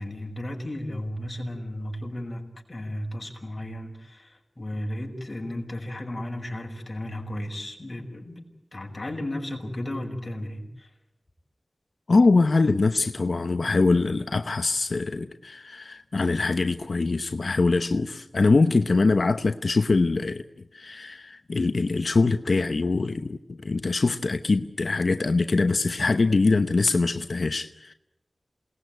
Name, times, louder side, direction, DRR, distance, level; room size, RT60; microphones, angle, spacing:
voice 1, 0.0-8.5 8.7-10.9, left 1 dB, 35° left, 2 dB, 5.5 m, -34 dB
voice 2, 12.1-20.4 20.7-27.9, left 3 dB, 70° left, 9 dB, 0.9 m, -23 dB
28.0 x 19.5 x 9.4 m, 0.90 s
wide cardioid pair, 70°, 0 cm